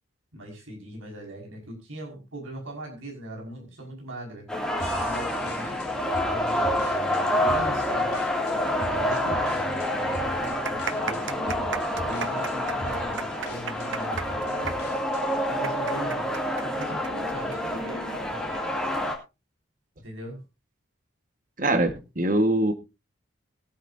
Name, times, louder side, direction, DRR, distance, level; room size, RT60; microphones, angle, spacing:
voice 1, 0.3-4.5 5.0-5.8 6.3-6.8 7.3-8.1 8.8-9.6 10.0-11.3 12.0-14.8 15.5-16.3 16.6-18.6 20.0-20.4, right 1 dB, 90° right, 1 dB, 5.5 m, -39 dB
sound 1, 4.5-19.1, left 1 dB, 5° left, 2.6 m, -28 dB
sound 2, 4.8-15.4, left 1 dB, 55° left, 3.3 m, -41 dB
sound 3, 9.3-9.4 9.6-9.7 10.3-17.6 17.9-18.0 18.7-19.0, right 6 dB, 70° right, 0.8 m, -35 dB
voice 2, 21.6-22.7, right 1 dB, 40° right, 8 dB, 1.6 m, -23 dB
22.0 x 8.4 x 2.7 m, 0.27 s
head